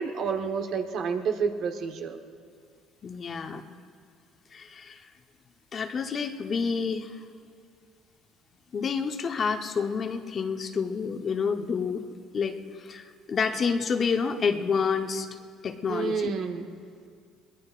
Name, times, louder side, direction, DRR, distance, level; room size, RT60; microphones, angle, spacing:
voice 1, 0.0-2.2 15.9-16.7, right 5 dB, 65° right, 4 dB, 1.2 m, -29 dB
voice 2, 3.0-3.6 4.5-5.0 5.7-7.2 8.7-12.0 12.3-15.3 15.6-16.3, left 5 dB, 45° left, 6 dB, 1.0 m, -29 dB
22.0 x 19.0 x 2.5 m, 2.2 s
supercardioid pair, 70°, 0 cm